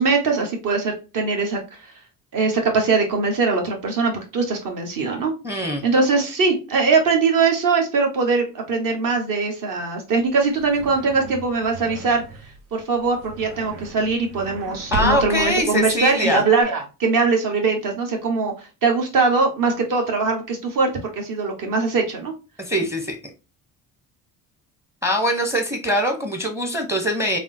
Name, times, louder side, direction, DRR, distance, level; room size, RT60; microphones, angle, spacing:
voice 1, 0.0-1.6 2.3-12.2 12.7-22.3, right 4 dB, 50° right, 1.2 m, -21 dB
voice 2, 5.4-5.8 14.9-16.4 22.7-23.2 25.0-27.4, equal, 5° right, 0.7 m, -22 dB
sound 1, 10.3-16.6, right 2 dB, 90° right, 0.6 m, -35 dB
3.4 x 2.1 x 2.6 m
hypercardioid pair, 65°, 43 cm